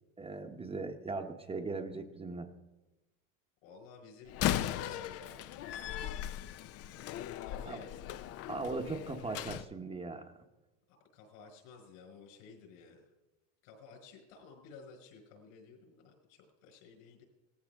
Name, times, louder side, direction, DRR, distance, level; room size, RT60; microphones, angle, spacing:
voice 1, 0.2-2.5 7.6-7.8 8.5-10.3, right 3 dB, 15° right, 3 dB, 1.0 m, -39 dB
voice 2, 3.6-5.6 7.5-8.0 10.9-13.0 13.6-17.2, left 4 dB, 70° left, 2 dB, 5.4 m, -54 dB
Slam, 4.3-9.7, left 12 dB, 35° left, 0.5 m, -37 dB
18.0 x 14.5 x 3.6 m, 1.1 s
supercardioid pair, 115°, 41 cm